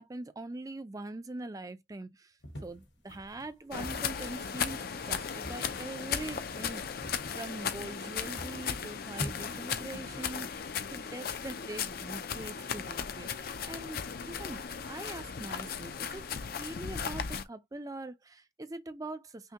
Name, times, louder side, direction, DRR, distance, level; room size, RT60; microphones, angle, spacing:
voice 1, 0.0-2.3 2.6-6.8 7.3-16.2 16.5-19.5, right 2 dB, 20° right, 0.4 m, -43 dB
sound 1, 2.4-8.1 8.4-11.3, equal, 65° left, 1.3 m, -47 dB
sound 2, 3.7-17.4, left 7 dB, 50° left, 0.4 m, -36 dB
5.6 x 2.2 x 2.8 m
head